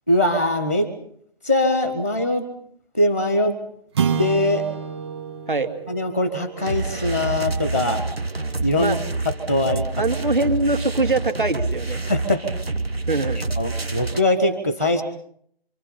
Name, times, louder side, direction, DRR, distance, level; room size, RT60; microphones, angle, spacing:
voice 1, 0.1-0.9 1.4-2.5 2.9-3.6 4.2-4.6 5.9-8.0 8.6-8.9 9.2-10.0 12.1-12.5 13.6-15.0, left 1 dB, 10° right, 11 dB, 1.0 m, -22 dB
sound 1, 3.9-8.4, right 7 dB, 25° right, 2.0 m, -29 dB
sound 2, 6.6-14.2, right 3 dB, 75° right, 1.8 m, -27 dB
voice 2, 10.0-12.0 13.1-13.4, right 2 dB, 55° right, 7 dB, 2.7 m, -23 dB
26.5 x 25.0 x 5.6 m, 0.66 s
figure-of-eight pair, 155°, 31 cm